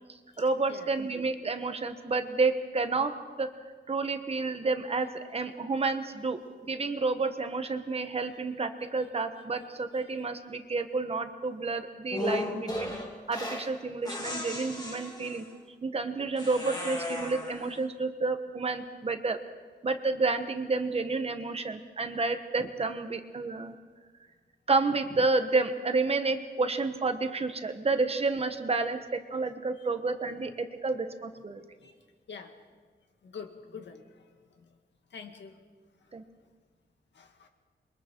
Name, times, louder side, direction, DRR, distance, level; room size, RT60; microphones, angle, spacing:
voice 1, 0.1-3.5 3.9-12.9 13.3-15.4 15.8-19.4 19.8-23.8 24.7-31.6 36.1-36.2, right 3 dB, 35° right, 8 dB, 1.2 m, -30 dB
sound 1, 12.1-13.7 14.0-15.5 16.4-17.8, left 2 dB, 20° left, 2.9 m, -36 dB
voice 2, 33.2-34.0 35.1-35.5 37.2-37.5, left 6 dB, 75° left, 5 dB, 2.0 m, -44 dB
28.0 x 23.0 x 4.6 m, 1.5 s
wide cardioid pair, 175°, 19 cm